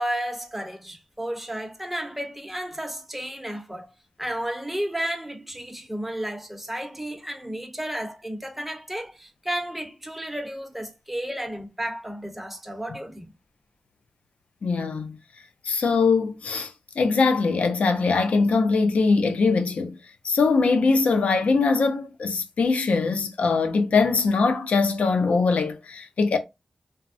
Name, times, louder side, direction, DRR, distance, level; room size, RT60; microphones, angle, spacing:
voice 1, 0.0-3.9 4.2-13.3, right 1 dB, 5° right, 0.7 m, -32 dB
voice 2, 14.6-15.2 15.6-20.0 20.2-26.4, left 4 dB, 85° left, 0.5 m, -22 dB
3.3 x 2.0 x 2.5 m
wide cardioid pair, 90°, 2 cm